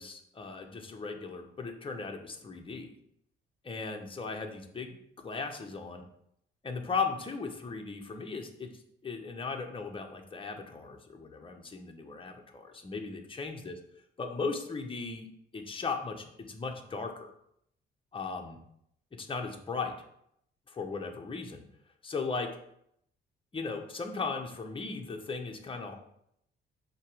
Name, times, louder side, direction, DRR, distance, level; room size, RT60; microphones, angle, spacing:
voice 1, 0.0-3.0 3.6-4.9 5.2-6.0 6.6-8.7 9.0-13.8 14.2-15.3 15.5-17.3 18.1-18.6 19.1-19.9 20.7-21.6 22.0-22.5 23.5-26.0, left 4 dB, 25° left, 3 dB, 1.0 m, -37 dB
6.7 x 3.0 x 4.9 m, 0.73 s
cardioid pair, 90°, 20 cm